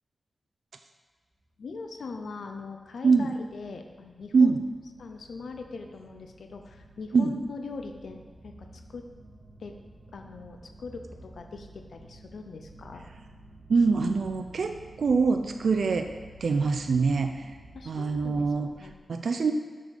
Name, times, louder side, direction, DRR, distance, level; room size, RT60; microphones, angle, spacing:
sound 1, 1.5-19.0, right 1 dB, 50° right, 1.3 m, -52 dB
voice 1, 1.6-4.5 5.0-9.1 9.6-9.8 10.1-13.0 16.6-16.7 17.7-18.5 18.8-18.9, left 4 dB, 80° left, 5 dB, 0.6 m, -41 dB
voice 2, 13.7-16.1 16.4-17.5 17.8-18.7 19.1-19.5, right 4 dB, 75° right, 6 dB, 0.5 m, -24 dB
6.7 x 6.6 x 5.3 m, 1.5 s
cardioid pair, 60°, 0 cm